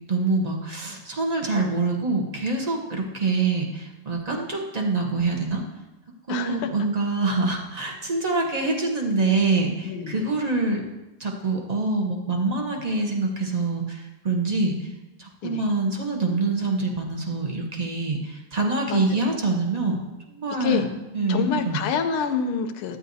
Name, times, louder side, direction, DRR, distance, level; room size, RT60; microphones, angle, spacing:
voice 1, 0.1-5.6 6.3-10.8 11.2-14.8 15.2-20.0 20.3-20.9 21.1-21.8, right 3 dB, 35° right, 0 dB, 0.6 m, -25 dB
voice 2, 6.3-6.7 9.8-10.3 15.4-15.7 18.9-19.3 20.6-20.9 21.3-23.0, left 7 dB, 80° left, 5 dB, 1.5 m, -27 dB
12.5 x 9.4 x 2.7 m, 1.0 s
omnidirectional pair, 2.3 m